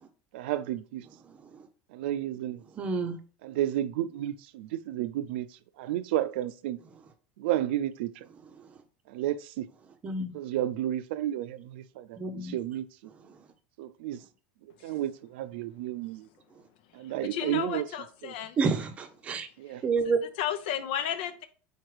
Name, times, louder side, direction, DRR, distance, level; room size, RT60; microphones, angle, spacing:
voice 1, 0.3-1.0 1.9-2.6 3.4-5.5 5.8-6.8 7.4-8.1 9.1-9.7 10.3-12.8 13.8-14.2 14.8-16.3 16.9-17.9 18.2-18.3 19.6-19.8, right 12 dB, 80° right, 0.5 m, -32 dB
voice 2, 2.8-3.2 10.0-10.3 12.2-12.6 18.6-19.5 19.8-20.2, right 4 dB, 20° right, 0.7 m, -28 dB
voice 3, 17.3-18.6 20.4-21.5, left 9 dB, 75° left, 0.8 m, -32 dB
4.6 x 4.3 x 4.8 m
cardioid pair, 165°, 6 cm